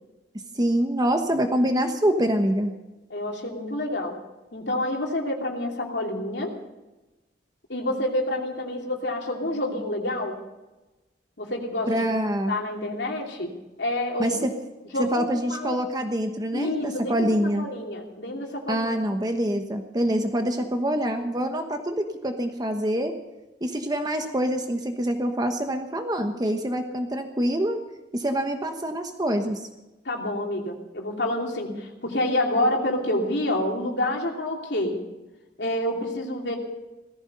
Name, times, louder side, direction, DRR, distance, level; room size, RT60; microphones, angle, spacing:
voice 1, 0.6-2.7 11.9-12.5 14.2-14.5 15.0-17.7 18.7-23.1 23.6-27.8 28.1-29.7, right 1 dB, 25° right, 6 dB, 1.1 m, -25 dB
voice 2, 3.1-4.2 4.5-6.5 7.7-10.4 11.4-12.0 12.5-13.5 13.8-14.5 14.9-15.8 16.5-18.8 30.0-35.0 35.6-36.6, left 1 dB, 75° left, 0 dB, 3.0 m, -28 dB
17.5 x 15.0 x 5.4 m, 1.1 s
head